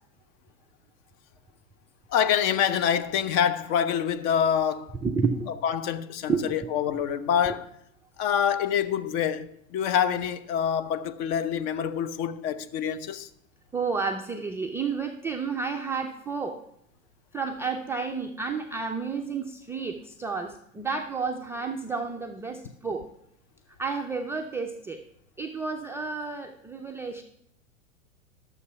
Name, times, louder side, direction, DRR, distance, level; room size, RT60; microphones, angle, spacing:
voice 1, 2.1-4.9 5.6-7.6 8.2-13.3, left 8 dB, 40° left, 0.9 m, -26 dB
voice 2, 5.0-5.6 6.3-6.7 6.9-7.0 7.5-7.6 13.7-16.6 17.3-23.1 23.8-25.0 25.4-27.2, right 5 dB, 5° right, 0.3 m, -31 dB
12.5 x 7.0 x 5.7 m
hypercardioid pair, 100°, 40 cm